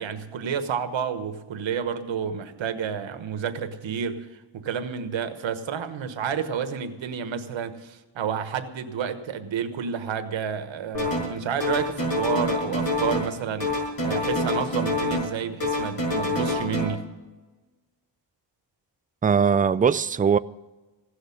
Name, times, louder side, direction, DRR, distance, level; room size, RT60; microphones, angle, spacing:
voice 1, 0.0-17.1, right 7 dB, 90° right, 1.3 m, -30 dB
sound 1, 10.9-11.3 11.6-13.3 13.6-15.3 15.6-16.8, left 2 dB, 50° left, 5.8 m, -26 dB
voice 2, 19.2-20.4, right 6 dB, 20° right, 0.4 m, -20 dB
16.5 x 6.4 x 9.9 m
cardioid pair, 80°, 44 cm